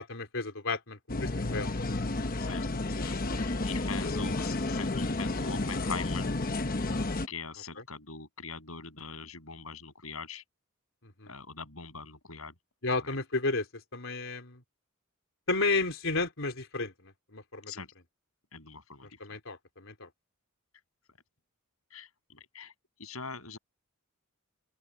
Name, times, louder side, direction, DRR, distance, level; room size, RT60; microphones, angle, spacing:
voice 1, 0.0-1.8 11.0-11.3 12.8-13.7 13.9-14.6 15.5-17.7 19.2-20.1, left 3 dB, 65° left, 4.1 m, -32 dB
sound 1, 1.1-7.3, left 2 dB, 45° left, 1.1 m, -31 dB
voice 2, 3.0-6.3 7.3-10.4 11.3-12.5 13.0-13.2 17.7-17.9 18.5-19.2 21.1-21.2 21.9-22.7 23.0-23.6, left 4 dB, 80° left, 7.1 m, -42 dB
open air
head